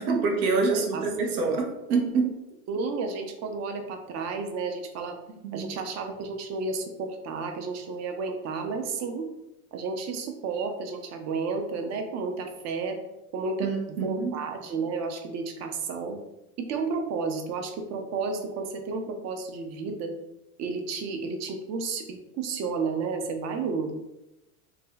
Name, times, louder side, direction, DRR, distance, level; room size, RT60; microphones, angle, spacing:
voice 1, 0.0-2.3 5.4-5.6 13.6-14.4, right 4 dB, 75° right, 2 dB, 0.9 m, -26 dB
voice 2, 0.7-1.0 2.7-5.2 5.5-9.3 9.7-13.0 13.3-16.2 16.6-20.1 20.6-24.0, right 4 dB, 35° right, 5 dB, 0.6 m, -32 dB
2.7 x 2.2 x 3.8 m, 0.94 s
hypercardioid pair, 95°, 45 cm